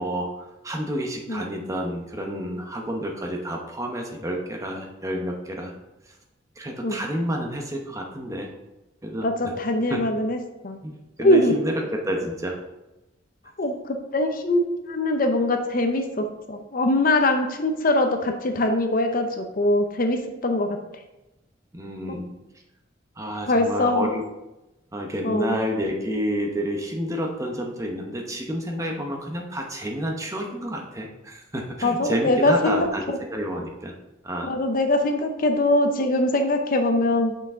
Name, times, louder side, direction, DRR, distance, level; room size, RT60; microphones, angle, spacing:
voice 1, 0.0-5.7 6.6-8.5 9.0-9.5 9.9-10.0 10.8-12.6 21.7-22.3 23.2-24.2 24.9-33.9 34.2-34.5, equal, 15° right, 1 dB, 0.9 m, -29 dB
voice 2, 9.2-10.4 10.6-10.8 11.2-11.5 13.6-20.8 23.5-24.1 25.2-25.6 31.8-32.9 34.4-37.3, left 1 dB, 50° left, 5 dB, 0.7 m, -22 dB
5.8 x 5.8 x 3.7 m, 0.97 s
head